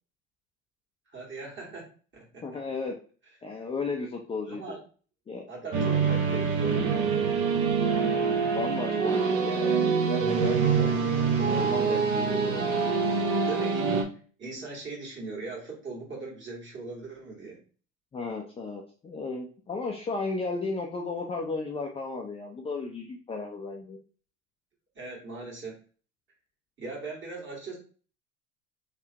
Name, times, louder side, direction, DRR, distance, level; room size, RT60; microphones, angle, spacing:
voice 1, 1.1-1.9 2.1-2.4 4.5-4.8 5.5-7.7 13.5-13.9 14.4-17.6 25.0-25.8 26.8-27.8, right 3 dB, 30° right, -2 dB, 2.0 m, -40 dB
voice 2, 2.4-2.9 3.4-4.6 5.3-5.5 8.2-10.9 11.4-13.1 18.1-24.0, left 3 dB, 15° left, 0 dB, 0.5 m, -34 dB
sound 1, 5.7-14.0, right 5 dB, 45° right, 1.1 m, -25 dB
3.4 x 3.3 x 2.9 m, 0.40 s
hypercardioid pair, 75°, 41 cm